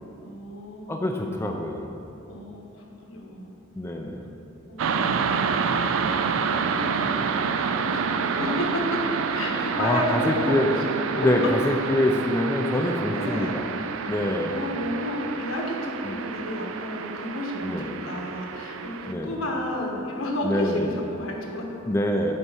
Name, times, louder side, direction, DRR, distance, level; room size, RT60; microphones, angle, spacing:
voice 1, 0.2-1.1 2.3-3.5 4.7-11.5 12.8-13.6 14.2-21.7, left 1 dB, 80° left, 0 dB, 1.3 m, -32 dB
voice 2, 0.9-1.9 3.8-4.3 9.8-10.7 11.1-13.6 14.1-14.6 16.0-16.2 17.6-17.9 19.1-19.3 20.4-20.9 21.8-22.3, left 1 dB, 10° left, 2 dB, 0.4 m, -25 dB
sound 1, 4.8-19.1, right 6 dB, 70° right, 0.4 m, -28 dB
8.1 x 4.6 x 5.6 m, 2.8 s
head